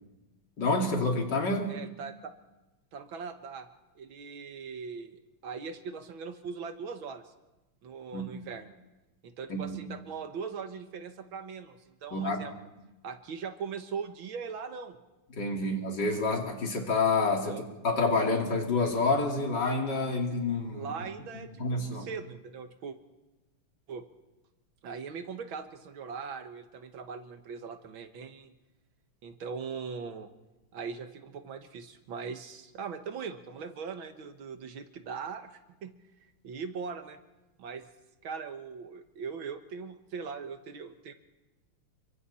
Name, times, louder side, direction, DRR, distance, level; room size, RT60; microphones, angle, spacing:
voice 1, 0.6-1.8 8.1-8.3 9.5-9.8 12.1-12.5 15.3-20.9 21.6-22.1, left 3 dB, 55° left, 1 dB, 3.3 m, -28 dB
voice 2, 1.7-2.3 2.9-3.7 4.0-7.3 7.8-8.7 9.2-12.5 13.0-15.0 17.4-17.6 20.7-23.0 23.9-24.0 24.8-28.6 29.2-30.3 30.7-35.9 36.4-37.2 37.6-37.9 38.2-41.1, right 5 dB, 70° right, 8 dB, 2.0 m, -40 dB
29.0 x 24.0 x 4.3 m, 1.0 s
omnidirectional pair, 2.3 m